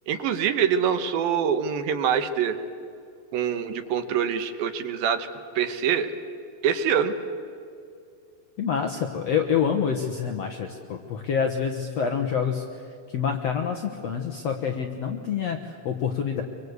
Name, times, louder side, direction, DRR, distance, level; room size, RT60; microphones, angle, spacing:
voice 1, 0.1-2.6 3.3-5.3 5.6-6.1 6.6-7.1, right 8 dB, 70° right, 8 dB, 2.6 m, -24 dB
voice 2, 8.6-12.6 13.1-16.4, left 7 dB, 85° left, 4 dB, 1.4 m, -27 dB
24.5 x 23.5 x 8.2 m, 2.4 s
omnidirectional pair, 4.7 m